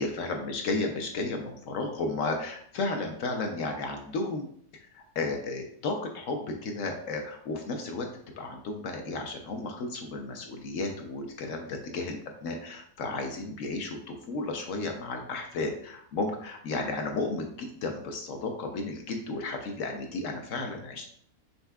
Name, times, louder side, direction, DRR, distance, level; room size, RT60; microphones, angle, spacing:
voice 1, 0.0-4.5 4.9-8.1 8.4-21.0, left 3 dB, 65° left, 3 dB, 0.9 m, -33 dB
5.6 x 3.4 x 2.2 m, 0.63 s
omnidirectional pair, 1.7 m